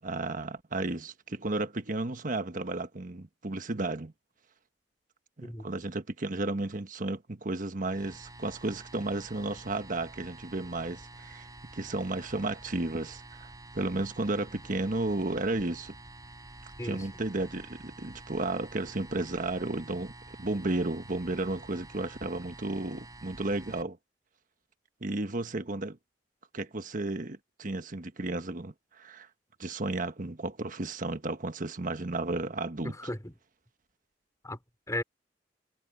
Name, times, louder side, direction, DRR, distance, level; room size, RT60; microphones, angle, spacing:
voice 1, 0.0-4.1 5.4-11.5 11.7-15.9 16.8-20.1 20.4-24.0 25.0-26.0 26.5-29.3 29.6-33.0, right 2 dB, 50° right, 1.3 m, -33 dB
sound 1, 7.8-23.8, right 2 dB, 20° right, 5.9 m, -49 dB
voice 2, 32.8-33.3 34.4-34.6 34.9-35.0, left 1 dB, 20° left, 3.7 m, -35 dB
head